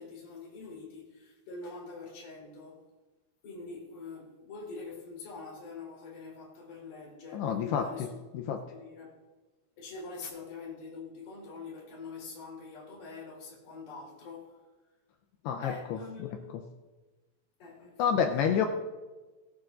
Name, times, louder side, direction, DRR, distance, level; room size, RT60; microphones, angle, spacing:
voice 1, 0.0-2.9 3.4-8.2 8.7-9.1 9.8-14.6 15.6-16.6 17.6-18.5, left 4 dB, 40° left, 5.2 m, -44 dB
voice 2, 7.3-7.9 8.3-8.6 15.5-16.0 18.0-18.7, left 8 dB, 80° left, 2.6 m, -28 dB
19.5 x 12.5 x 2.6 m
omnidirectional pair, 5.2 m